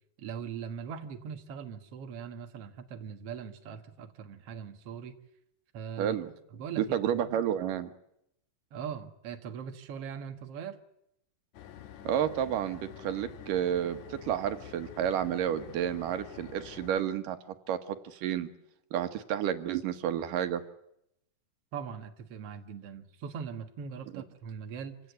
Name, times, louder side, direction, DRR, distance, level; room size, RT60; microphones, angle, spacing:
voice 1, 0.2-5.2 5.7-6.2 6.5-7.1 8.7-10.8 21.7-25.0, right 7 dB, 55° right, 6 dB, 2.3 m, -41 dB
voice 2, 6.0-6.3 6.8-7.9 12.0-17.4 17.7-18.5 18.9-20.6, right 10 dB, 90° right, 9 dB, 3.0 m, -30 dB
sound 1, 11.5-17.0, left 10 dB, 65° left, 2.5 m, -48 dB
26.5 x 17.0 x 9.3 m, 0.77 s
omnidirectional pair, 3.7 m